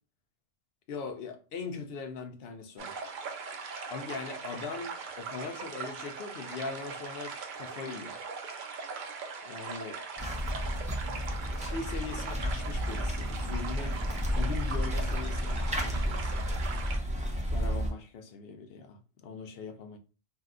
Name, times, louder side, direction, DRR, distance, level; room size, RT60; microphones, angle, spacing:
voice 1, 0.9-3.0 3.9-8.2 9.4-10.0 11.0-14.0 14.3-16.5 17.5-20.0, left 4 dB, 65° left, 0.8 m, -41 dB
sound 1, 2.8-17.0, right 5 dB, 55° right, 0.6 m, -40 dB
sound 2, 10.2-17.9, equal, 10° right, 0.3 m, -32 dB
2.7 x 2.2 x 3.6 m
omnidirectional pair, 1.2 m